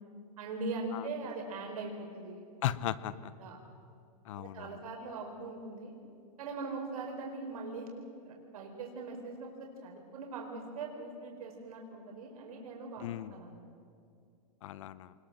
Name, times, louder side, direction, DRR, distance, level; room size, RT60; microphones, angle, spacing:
voice 1, 0.4-2.4 3.4-3.6 4.4-6.0 6.4-7.9 8.2-13.6, right 3 dB, 60° right, 1 dB, 4.7 m, -41 dB
voice 2, 2.6-3.3 4.2-4.8 13.0-13.4 14.6-15.1, left 12 dB, 50° left, 17 dB, 0.9 m, -37 dB
26.0 x 20.0 x 7.5 m, 2.4 s
hypercardioid pair, 160°, 20 cm